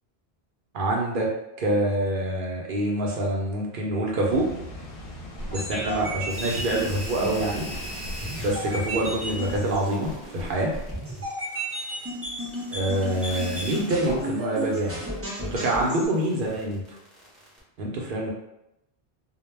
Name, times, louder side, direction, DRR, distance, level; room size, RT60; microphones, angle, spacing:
voice 1, 0.7-1.3 1.6-4.5 5.5-7.7 8.4-10.7 12.7-14.9 15.5-16.8 17.8-18.3, right 1 dB, 60° right, -2 dB, 0.8 m, -26 dB
Water, 4.3-9.6, equal, 60° left, 0.8 m, -40 dB
sound 1, 5.4-16.1, equal, 20° right, 0.4 m, -34 dB
sound 2, 6.3-17.6, equal, ahead, 0.7 m, -42 dB
2.2 x 2.1 x 3.2 m, 0.84 s
omnidirectional pair, 1.1 m